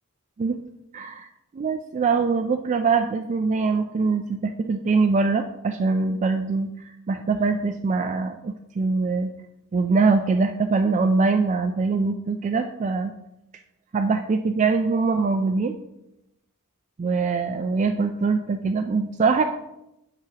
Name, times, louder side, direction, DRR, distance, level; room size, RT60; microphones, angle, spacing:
voice 1, 0.9-1.3 1.5-9.3 9.7-13.1 13.9-15.7 17.0-19.4, right 4 dB, 35° right, 6 dB, 0.3 m, -23 dB
9.0 x 5.9 x 2.8 m, 0.88 s
head